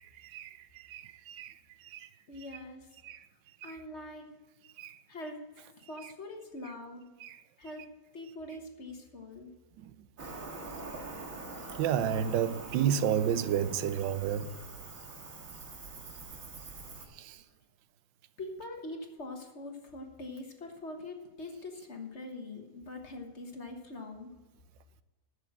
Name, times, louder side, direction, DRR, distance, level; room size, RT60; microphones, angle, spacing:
voice 1, 0.0-1.5 1.8-2.1 3.0-3.3 3.6-3.8 4.8-5.0 7.2-7.4 9.8-9.9 11.8-14.6 17.1-17.4, right 9 dB, 85° right, 1.3 m, -31 dB
voice 2, 2.3-2.9 3.6-4.3 5.1-7.1 7.6-7.9 8.1-9.5 18.4-24.3, left 2 dB, 40° left, 1.4 m, -43 dB
Cricket, 10.2-17.1, right 3 dB, 50° right, 1.8 m, -44 dB
11.0 x 7.1 x 7.4 m
omnidirectional pair, 2.0 m